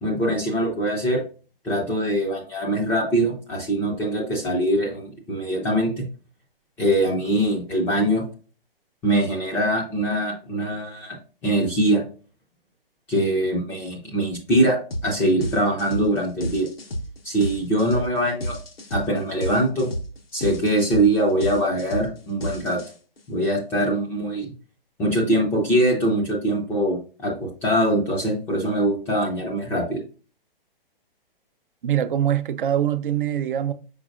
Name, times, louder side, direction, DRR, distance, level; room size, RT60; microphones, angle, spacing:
voice 1, 0.0-1.2 1.6-6.1 6.8-8.2 9.0-11.2 11.4-12.0 13.1-16.7 17.2-18.6 18.9-19.9 20.3-22.8 23.3-24.5 25.0-30.0, right 1 dB, 5° left, 0.4 m, -23 dB
sound 1, 14.9-15.1 15.4-23.2, equal, 85° left, 1.1 m, -31 dB
voice 2, 31.8-33.7, right 10 dB, 60° right, 0.5 m, -23 dB
5.2 x 4.1 x 2.4 m
hypercardioid pair, 135°, 29 cm